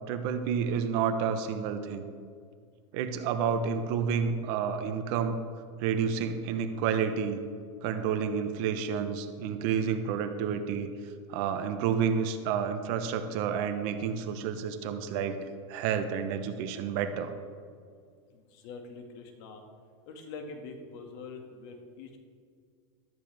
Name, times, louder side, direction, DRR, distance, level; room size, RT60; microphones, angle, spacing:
voice 1, 0.1-2.1 2.9-5.4 5.8-7.4 7.8-10.9 11.3-15.4 15.7-17.3, right 7 dB, 55° right, 9 dB, 1.1 m, -30 dB
voice 2, 18.3-19.6 20.1-22.2, left 4 dB, 60° left, 3 dB, 2.1 m, -44 dB
14.0 x 12.5 x 3.6 m, 2.1 s
supercardioid pair, 125°, 15 cm